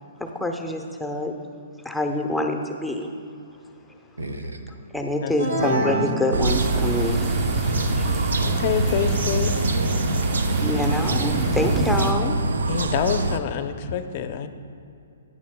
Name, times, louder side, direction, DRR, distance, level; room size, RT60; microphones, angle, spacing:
voice 1, 0.2-1.3 1.8-3.1 4.9-7.3 8.0-8.1 10.6-12.4, left 1 dB, ahead, 0.8 m, -26 dB
voice 2, 4.2-4.6 9.0-10.6, right 2 dB, 90° right, 0.9 m, -32 dB
sound 1, 5.4-7.2, right 2 dB, 50° right, 1.9 m, -27 dB
voice 3, 5.6-6.1 7.7-9.8 12.7-14.5, left 8 dB, 45° left, 0.6 m, -28 dB
sound 2, 6.3-13.4, right 3 dB, 75° right, 0.6 m, -24 dB
sound 3, 6.5-12.1, right 1 dB, 20° right, 1.0 m, -29 dB
15.5 x 10.5 x 2.2 m
hypercardioid pair, 130°, 0 cm